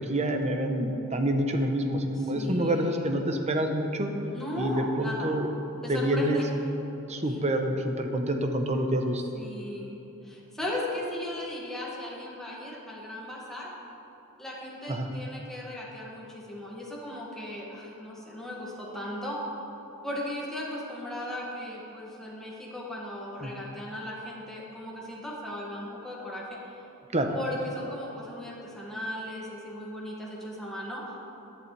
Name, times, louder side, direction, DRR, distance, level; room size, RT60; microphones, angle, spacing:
voice 1, 0.0-4.1 4.6-5.5 5.9-6.4 7.1-9.2 14.9-15.0 23.4-23.5 27.1-27.3, right 1 dB, 30° right, 4 dB, 0.8 m, -27 dB
voice 2, 2.2-3.1 4.3-5.3 5.8-6.4 7.2-7.4 9.3-10.0 10.2-13.7 14.4-19.4 20.0-26.6 27.3-31.0, left 1 dB, ahead, -6 dB, 2.0 m, -37 dB
14.5 x 11.5 x 3.4 m, 3.0 s
head